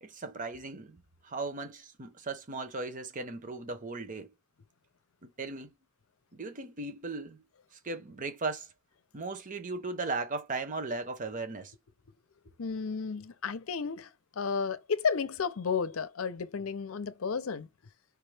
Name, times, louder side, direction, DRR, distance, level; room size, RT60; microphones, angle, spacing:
voice 1, 0.0-4.3 5.2-5.7 6.3-7.4 7.8-8.7 9.1-11.7, right 3 dB, 40° right, 0.8 m, -37 dB
voice 2, 12.6-17.7, left 5 dB, 75° left, 0.6 m, -32 dB
4.8 x 2.9 x 3.3 m
head